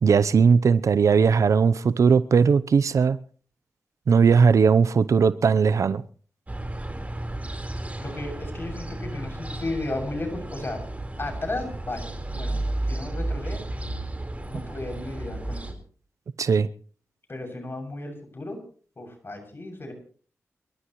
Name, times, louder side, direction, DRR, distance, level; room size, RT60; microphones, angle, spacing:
voice 1, 0.0-3.2 4.1-6.0 16.4-16.7, right 5 dB, 70° right, 0.7 m, -18 dB
sound 1, 6.5-15.7, right 1 dB, 25° right, 4.2 m, -33 dB
voice 2, 8.0-10.8 11.2-13.6 14.5-15.8 17.3-18.6 19.0-19.9, left 2 dB, 45° left, 7.0 m, -34 dB
29.5 x 13.0 x 3.1 m
cardioid pair, 45°, 6 cm